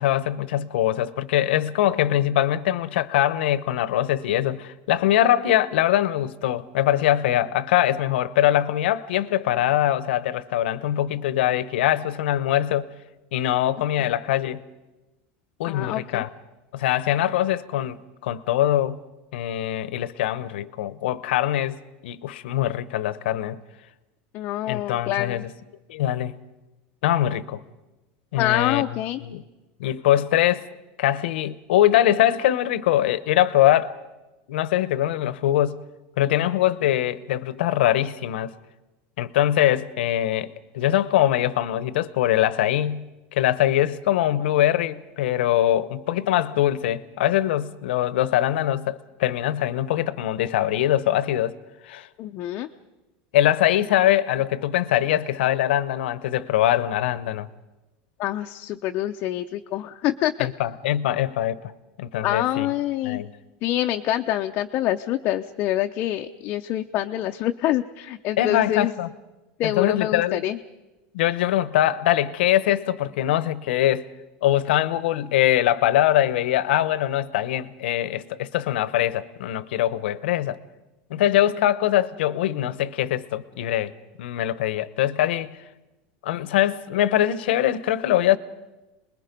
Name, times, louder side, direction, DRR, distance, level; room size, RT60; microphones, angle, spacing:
voice 1, 0.0-12.9 13.3-14.6 15.6-16.3 16.7-19.0 19.3-21.8 22.0-23.6 24.7-25.5 25.9-26.3 27.0-27.6 28.3-28.8 29.2-29.4 29.8-30.7 31.0-34.0 34.5-35.8 36.2-38.5 39.2-43.1 43.3-51.5 51.8-52.1 53.3-57.5 60.4-61.7 62.0-62.7 63.0-63.3 68.4-69.1 69.6-70.5 71.1-74.1 74.4-80.6 81.1-83.9 84.2-85.6 86.2-88.4, left 12 dB, 90° left, 0.9 m, -22 dB
voice 2, 15.6-16.2 24.3-25.4 28.4-29.2 52.2-52.7 58.2-60.5 62.2-63.2 63.6-68.9 69.6-70.6, left 13 dB, 40° left, 0.6 m, -26 dB
27.5 x 21.0 x 5.3 m
supercardioid pair, 160°, 6 cm